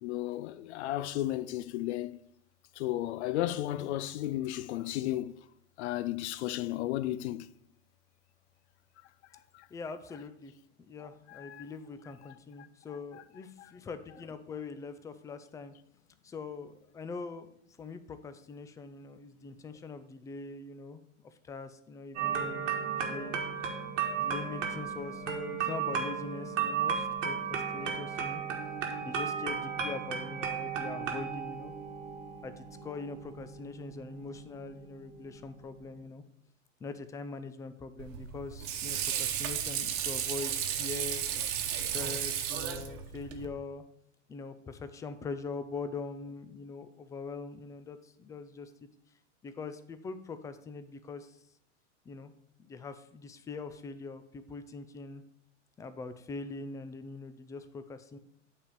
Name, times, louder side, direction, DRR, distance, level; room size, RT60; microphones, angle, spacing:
voice 1, 0.0-2.2 2.8-5.3 5.8-7.5 11.3-11.6, left 14 dB, 65° left, 0.5 m, -33 dB
voice 2, 9.7-10.5 10.8-15.7 16.2-17.5 17.8-21.0 21.4-23.5 24.2-28.4 29.0-31.7 32.4-36.2 36.8-41.5 41.9-43.8 44.3-48.9 49.4-51.4 52.1-52.3 52.6-55.2 55.8-58.2, left 4 dB, 10° left, 0.3 m, -42 dB
sound 1, 22.2-36.0, right 6 dB, 80° right, 1.5 m, -35 dB
Water / Sink (filling or washing), 38.0-43.5, right 9 dB, 55° right, 1.1 m, -34 dB
8.9 x 3.4 x 6.7 m
hypercardioid pair, 100°, 37 cm